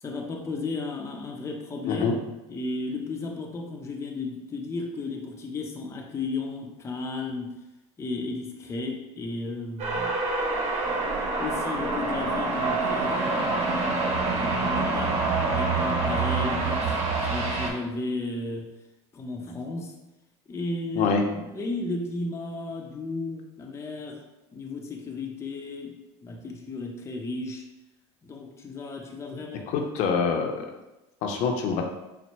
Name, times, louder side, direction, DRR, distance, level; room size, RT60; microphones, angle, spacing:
voice 1, 0.0-2.1 2.5-7.6 8.0-10.2 10.8-13.7 14.1-15.2 15.4-18.7 19.1-19.9 20.5-24.2 24.5-27.6 28.2-29.7, left 3 dB, 20° left, 1 dB, 0.6 m, -34 dB
sound 1, 9.8-17.7, right 3 dB, 45° right, 1.0 m, -26 dB
voice 2, 29.7-30.7 31.2-31.8, left 5 dB, 60° left, 3 dB, 0.7 m, -25 dB
4.2 x 2.1 x 4.4 m, 0.97 s
supercardioid pair, 100°, 15 cm